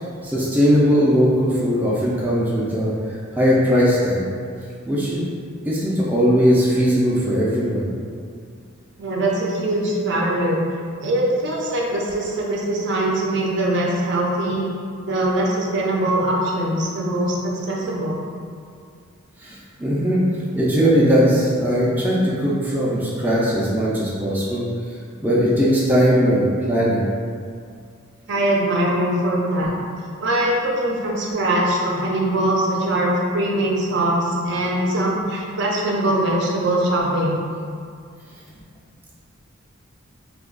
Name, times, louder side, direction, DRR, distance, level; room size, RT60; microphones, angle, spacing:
voice 1, 0.2-2.9 3.3-4.2 4.8-5.3 5.6-7.9 19.4-20.2 20.5-24.7 25.2-27.0, equal, 10° right, -7 dB, 0.4 m, -19 dB
voice 2, 9.0-10.6 11.0-14.7 15.1-18.2 28.3-29.7 30.2-37.4, right 1 dB, 55° right, -2 dB, 0.5 m, -22 dB
2.8 x 2.3 x 3.7 m, 2.2 s
head